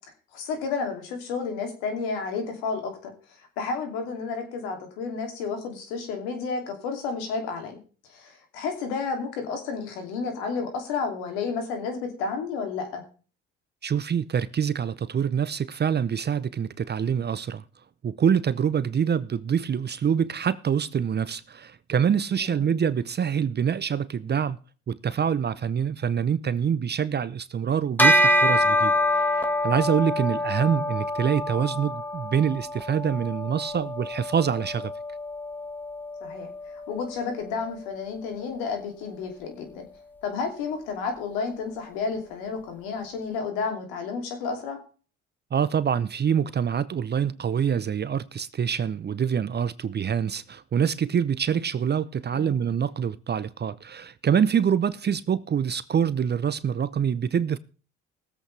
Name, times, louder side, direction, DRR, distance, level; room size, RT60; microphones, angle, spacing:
voice 1, 0.3-3.1 3.4-7.8 8.1-13.0 22.4-22.7 36.2-39.9 40.2-44.8 52.3-52.7, left 5 dB, 85° left, 2.9 m, -31 dB
voice 2, 13.8-17.6 18.0-24.6 24.9-34.9 45.5-57.6, right 7 dB, 35° right, 0.7 m, -25 dB
Bell, 28.0-37.7, equal, 5° left, 1.8 m, -26 dB
20.0 x 8.1 x 3.4 m
hypercardioid pair, 65°, 30 cm